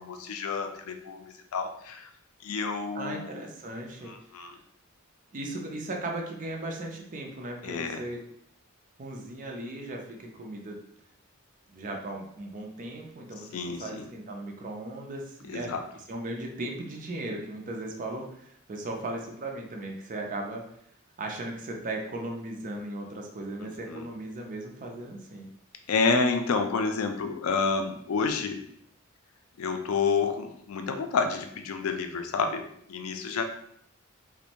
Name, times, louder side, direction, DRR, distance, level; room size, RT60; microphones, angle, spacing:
voice 1, 0.0-2.1 2.4-3.4 4.0-4.5 7.6-8.0 13.5-14.0 15.5-15.8 23.6-24.0 25.9-28.6 29.6-33.4, left 4 dB, 80° left, 6 dB, 0.4 m, -29 dB
voice 2, 2.9-4.1 5.3-8.2 9.0-10.8 11.7-15.7 16.1-20.6 21.2-25.5, right 2 dB, 40° right, 1 dB, 0.5 m, -37 dB
2.5 x 2.1 x 2.8 m, 0.69 s
head